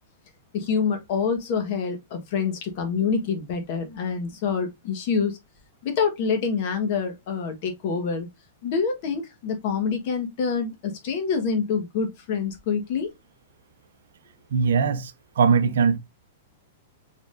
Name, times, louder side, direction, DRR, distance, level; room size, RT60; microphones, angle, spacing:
voice 1, 0.5-5.4 5.8-8.3 8.6-13.1, left 5 dB, 35° left, 1.1 m, -26 dB
voice 2, 14.5-16.0, right 5 dB, 75° right, 0.7 m, -21 dB
4.7 x 3.7 x 2.4 m
supercardioid pair, 180°, 0 cm